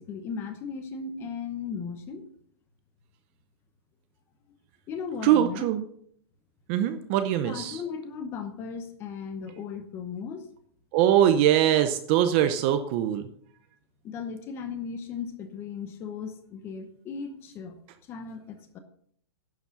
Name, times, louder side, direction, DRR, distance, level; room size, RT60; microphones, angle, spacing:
voice 1, 0.0-2.3 4.9-5.7 7.4-10.5 14.0-17.8 18.1-18.8, left 6 dB, 15° left, 8 dB, 0.9 m, -36 dB
voice 2, 5.2-5.8 6.7-7.8 10.9-13.2, right 11 dB, 25° right, 9 dB, 0.6 m, -22 dB
11.0 x 7.3 x 5.8 m, 0.64 s
hypercardioid pair, 175°, 14 cm